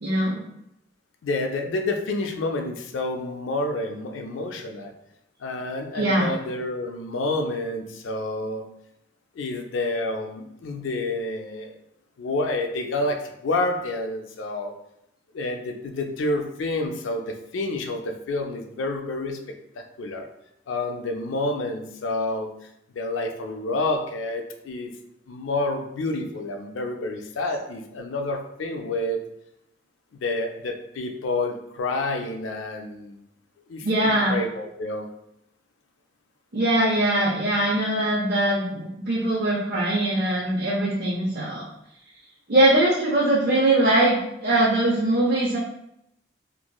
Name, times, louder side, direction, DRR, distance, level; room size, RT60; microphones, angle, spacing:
voice 1, 0.0-0.4 5.9-6.3 33.8-34.4 36.5-41.6 42.5-45.6, right 1 dB, 50° right, -5 dB, 0.5 m, -21 dB
voice 2, 1.2-4.9 5.4-8.7 9.4-11.8 12.2-14.7 15.3-19.4 20.0-20.3 20.7-22.5 22.9-24.9 25.3-29.2 30.2-33.2 33.7-35.1, left 2 dB, 85° left, 4 dB, 0.4 m, -29 dB
2.9 x 2.5 x 2.2 m, 0.80 s
head